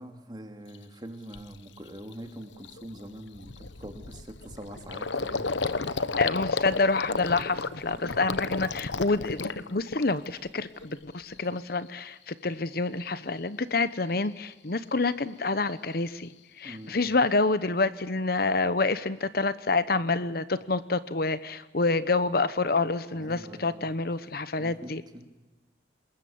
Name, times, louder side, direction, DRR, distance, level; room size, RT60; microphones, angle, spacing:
voice 1, 0.0-6.0 16.6-17.0 23.1-23.9 24.6-25.2, right 1 dB, 25° right, 5 dB, 2.8 m, -44 dB
Gurgling, 0.7-0.8 1.3-1.6 2.0-2.1 2.4-10.4 10.8-11.4, left 4 dB, 80° left, 1.1 m, -33 dB
voice 2, 6.2-9.4 9.7-16.3 16.6-25.0, left 3 dB, 55° left, 14 dB, 1.0 m, -27 dB
27.0 x 21.0 x 8.7 m, 1.1 s
head